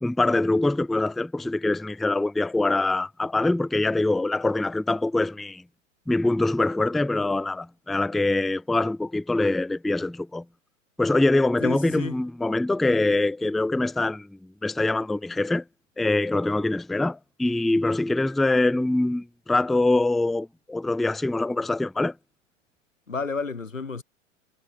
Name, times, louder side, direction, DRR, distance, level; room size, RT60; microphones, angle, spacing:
voice 1, 0.0-5.6 6.1-10.4 11.0-15.6 16.0-22.1, left 2 dB, ahead, 0.4 m, -24 dB
voice 2, 11.6-12.2 23.1-24.0, left 4 dB, 80° left, 6.2 m, -31 dB
figure-of-eight pair, 100°, 39 cm